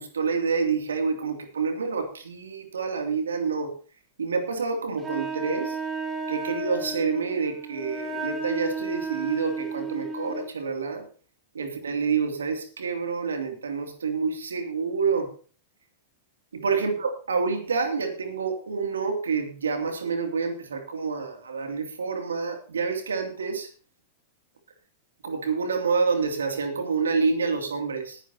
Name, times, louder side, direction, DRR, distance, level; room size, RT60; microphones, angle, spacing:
voice 1, 0.0-3.7 4.2-5.8 6.3-11.1 11.5-15.3 16.5-23.7 25.2-28.2, right 5 dB, 80° right, 5 dB, 2.7 m, -28 dB
Wind instrument woodwind instrument, 5.0-10.5, right 3 dB, 20° right, 2.9 m, -33 dB
21.0 x 10.0 x 2.9 m, 0.37 s
hypercardioid pair, 100°, 0 cm